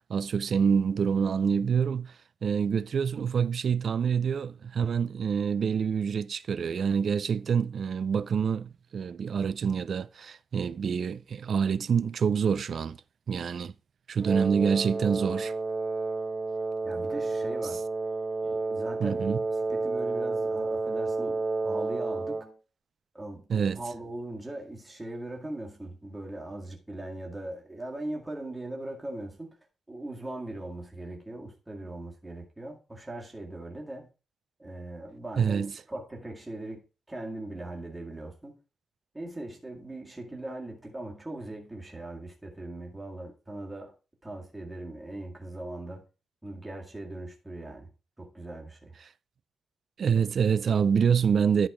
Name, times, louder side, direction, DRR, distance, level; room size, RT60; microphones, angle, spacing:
voice 1, 0.1-2.1 2.4-13.0 13.3-13.7 14.1-15.5 19.0-19.4 23.5-23.8 35.4-35.7 50.0-51.7, right 6 dB, 50° right, 0.4 m, -26 dB
Wind instrument woodwind instrument, 14.2-22.5, right 3 dB, 25° right, 1.1 m, -30 dB
voice 2, 16.8-17.8 18.4-19.3 19.7-22.5 23.1-29.6 29.9-34.1 34.6-36.8 37.1-38.6 39.1-43.9 44.2-46.0 46.4-47.9 48.2-48.9, right 1 dB, 10° right, 2.0 m, -40 dB
11.0 x 4.0 x 4.9 m
wide cardioid pair, 150°, 0 cm